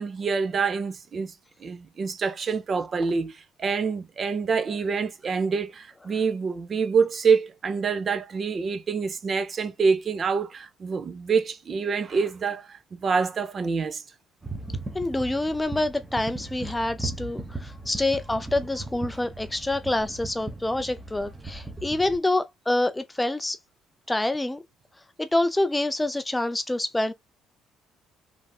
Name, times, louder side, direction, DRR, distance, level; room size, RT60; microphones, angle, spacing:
voice 1, 0.0-1.3 1.6-14.0, right 5 dB, 40° right, 0.5 m, -26 dB
sound 1, 14.4-22.2, right 2 dB, 15° right, 0.9 m, -37 dB
voice 2, 14.9-23.6 24.1-24.6 25.2-27.1, left 2 dB, 10° left, 0.3 m, -26 dB
3.4 x 2.6 x 2.3 m
cardioid pair, 95°, 0 cm